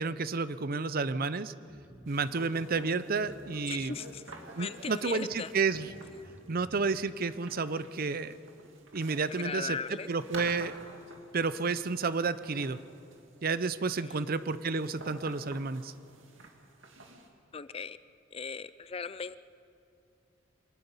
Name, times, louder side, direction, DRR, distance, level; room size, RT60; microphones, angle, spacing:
voice 1, 0.0-1.5 2.1-3.9 4.6-5.9 6.5-8.4 8.9-10.7 11.3-12.8 13.4-15.9, right 4 dB, 50° right, 14 dB, 0.6 m, -31 dB
sound 1, 1.7-2.1 2.6-2.7 3.3-3.5 3.8-4.6 5.3-5.4 5.9-7.1, equal, 10° right, 1.0 m, -53 dB
sound 2, 2.1-17.3, right 2 dB, 80° right, 2.2 m, -50 dB
voice 2, 3.7-4.2 4.6-5.5 9.3-10.1 14.0-14.1 17.5-18.0 18.3-19.4, left 6 dB, 30° left, 15 dB, 0.4 m, -38 dB
24.5 x 19.5 x 5.5 m, 2.5 s
head